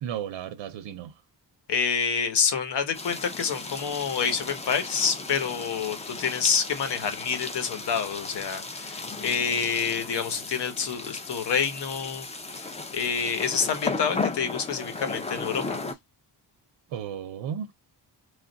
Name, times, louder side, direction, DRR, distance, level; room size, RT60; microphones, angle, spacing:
voice 1, 0.0-1.1 16.9-17.7, right 9 dB, 85° right, 0.6 m, -34 dB
voice 2, 1.7-15.8, left 6 dB, 65° left, 1.0 m, -28 dB
sound 1, 2.9-15.9, left 3 dB, 15° left, 0.4 m, -36 dB
3.3 x 2.4 x 3.8 m
wide cardioid pair, 170°, 44 cm